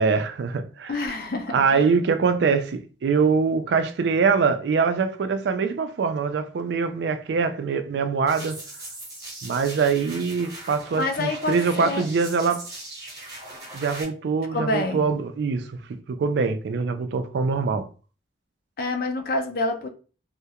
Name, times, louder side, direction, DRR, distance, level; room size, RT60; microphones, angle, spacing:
voice 1, 0.0-0.9 1.5-8.6 9.4-12.7 13.7-15.8 16.1-17.9, right 5 dB, 75° right, 0.3 m, -23 dB
voice 2, 0.9-1.8 11.0-12.0 14.5-15.1 18.8-19.9, left 2 dB, 55° left, 0.4 m, -27 dB
sound 1, 8.3-14.0, right 2 dB, 20° right, 0.8 m, -40 dB
2.3 x 2.1 x 2.8 m
head